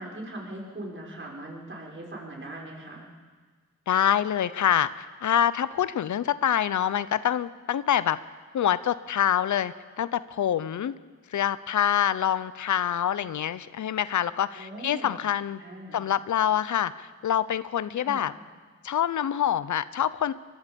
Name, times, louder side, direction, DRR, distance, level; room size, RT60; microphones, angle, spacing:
voice 1, 0.0-3.1 14.5-15.2 15.6-16.0 18.0-18.3, right 1 dB, 40° right, -2 dB, 5.7 m, -40 dB
voice 2, 3.9-8.2 8.5-10.9 11.3-15.6 15.9-18.3 18.8-20.3, left 10 dB, 75° left, 16 dB, 0.7 m, -26 dB
24.0 x 21.0 x 5.3 m, 1.5 s
cardioid pair, 60°, 30 cm